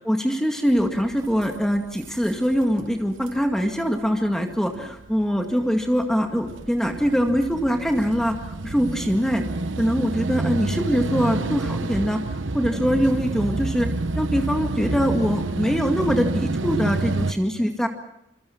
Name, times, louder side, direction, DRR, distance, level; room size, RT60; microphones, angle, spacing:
voice 1, 0.0-9.4 9.8-12.2 12.5-13.9 14.2-17.9, equal, 5° left, 3 dB, 2.0 m, -23 dB
sound 1, 0.7-17.3, right 2 dB, 80° right, 1.0 m, -29 dB
26.5 x 25.0 x 5.9 m, 0.82 s
head